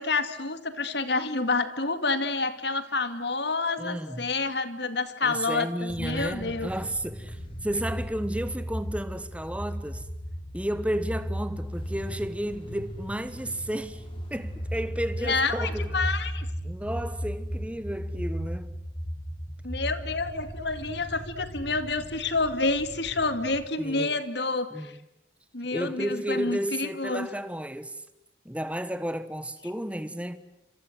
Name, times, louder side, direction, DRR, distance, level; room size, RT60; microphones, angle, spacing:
voice 1, 0.0-6.7 15.2-16.5 19.6-24.9 25.5-27.3, left 3 dB, 65° left, 2.1 m, -28 dB
voice 2, 3.8-4.3 5.2-10.1 10.5-14.0 14.3-16.0 16.6-18.7 23.8-24.2 24.7-25.0 25.7-28.0 28.4-30.4, right 1 dB, 5° right, 1.3 m, -32 dB
sound 1, 5.9-23.7, equal, 25° left, 4.9 m, -36 dB
27.5 x 27.0 x 8.0 m
head